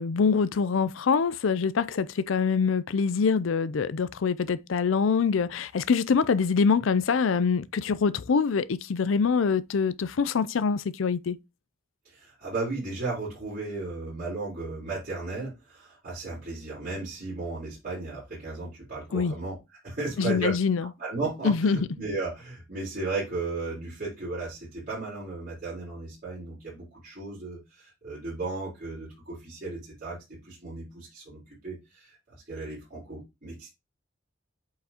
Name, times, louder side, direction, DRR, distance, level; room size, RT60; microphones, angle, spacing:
voice 1, 0.0-11.4 19.1-19.3 20.2-20.9 21.4-21.8, left 5 dB, 80° left, 0.5 m, -24 dB
voice 2, 12.0-20.6 21.0-30.2 30.4-33.7, right 3 dB, 45° right, 4.2 m, -35 dB
8.2 x 4.7 x 2.9 m
head